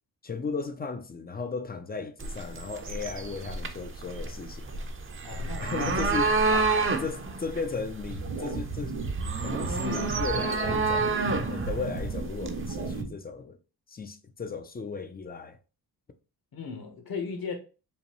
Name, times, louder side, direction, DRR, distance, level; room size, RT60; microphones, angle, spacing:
voice 1, 0.2-4.6 5.6-6.4 7.0-9.0 9.4-13.6 13.9-15.6, left 4 dB, 25° left, 0.5 m, -35 dB
sound 1, 2.2-13.0, right 3 dB, 30° right, 0.6 m, -30 dB
voice 2, 5.2-6.1 6.5-7.0 16.5-17.5, left 5 dB, 65° left, 1.3 m, -37 dB
sound 2, 8.1-13.1, right 4 dB, 90° right, 2.1 m, -34 dB
5.3 x 2.2 x 3.0 m
cardioid pair, 85°, 39 cm